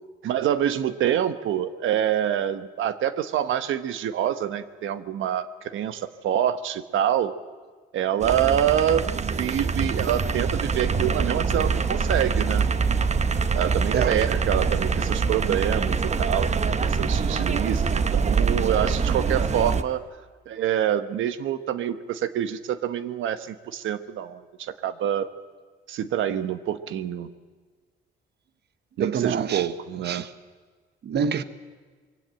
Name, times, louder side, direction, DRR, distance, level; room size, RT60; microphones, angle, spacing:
voice 1, 0.2-7.3 7.9-12.7 13.5-20.0 20.5-25.3 25.9-27.3 29.0-30.2, right 10 dB, 80° right, 1.2 m, -26 dB
sound 1, 8.2-19.8, right 5 dB, 35° right, 1.0 m, -24 dB
voice 2, 29.0-29.7 30.0-30.3 31.0-31.4, right 7 dB, 55° right, 1.1 m, -26 dB
23.0 x 16.5 x 8.9 m
cardioid pair, 90°, 20 cm